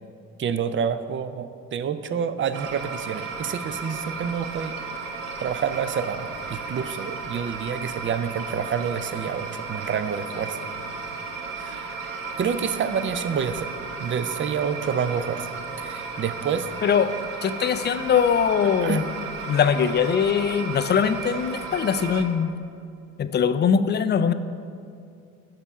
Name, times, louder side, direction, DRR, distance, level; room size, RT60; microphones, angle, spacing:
voice 1, 0.4-4.8 5.4-10.6 11.6-12.0 12.4-13.7 14.0-15.5 15.8-16.7 18.6-19.1, right 7 dB, 30° right, 12 dB, 0.5 m, -28 dB
sound 1, 2.5-22.2, right 4 dB, 80° right, 0.9 m, -34 dB
voice 2, 16.8-17.2 17.4-19.0 19.5-22.5 23.2-24.3, left 7 dB, 25° left, 12 dB, 0.4 m, -21 dB
6.7 x 5.8 x 5.6 m, 2.4 s
hypercardioid pair, 55°, 41 cm